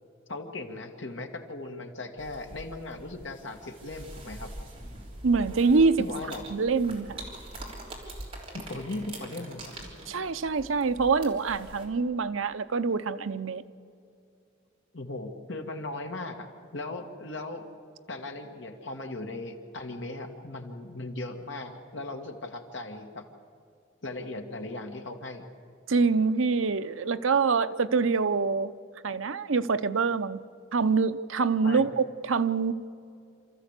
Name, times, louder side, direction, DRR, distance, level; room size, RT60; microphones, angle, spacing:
voice 1, 0.3-4.5 6.0-6.4 8.5-9.7 14.9-16.4 16.7-17.7 18.1-23.3 24.0-25.4 31.6-31.9, left 2 dB, 70° left, 4 dB, 2.0 m, -38 dB
sound 1, 2.2-11.9, right 1 dB, 30° right, 3.5 m, -44 dB
voice 2, 5.2-6.1 6.5-7.2 10.1-13.6 25.9-28.7 29.0-30.4 30.7-32.7, right 4 dB, 85° right, 12 dB, 0.7 m, -25 dB
27.5 x 13.5 x 8.3 m, 2.5 s
head